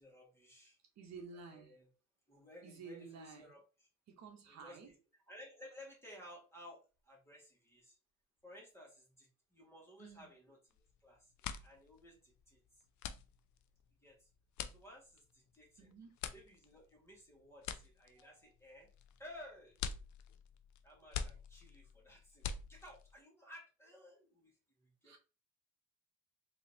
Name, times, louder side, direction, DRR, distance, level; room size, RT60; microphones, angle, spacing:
voice 1, 0.0-0.8 1.5-1.9 2.3-3.9 4.5-5.0 5.3-8.0 8.4-10.6 11.0-11.3 11.6-12.9 14.0-14.3 14.7-15.9 16.3-18.9 19.2-19.8 20.8-25.1, left 1 dB, 10° left, 1.8 m, -57 dB
voice 2, 1.0-1.7 2.6-3.5 4.1-4.9 10.0-10.3 15.8-16.2 25.0-25.2, right 4 dB, 65° right, 1.0 m, -52 dB
sound 1, 10.7-11.0 11.3-23.2, left 7 dB, 70° left, 0.5 m, -46 dB
3.9 x 2.9 x 2.8 m
cardioid pair, 90°, 30 cm